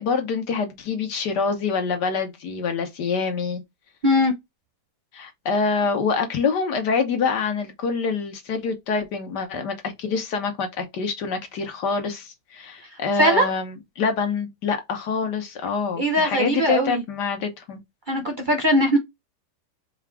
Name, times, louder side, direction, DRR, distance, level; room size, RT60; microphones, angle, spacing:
voice 1, 0.0-3.6 5.1-17.8, left 5 dB, 70° left, 1.7 m, -26 dB
voice 2, 13.2-13.5 16.0-17.0 18.1-19.0, equal, 40° right, 0.7 m, -20 dB
4.8 x 2.5 x 3.4 m
omnidirectional pair, 1.9 m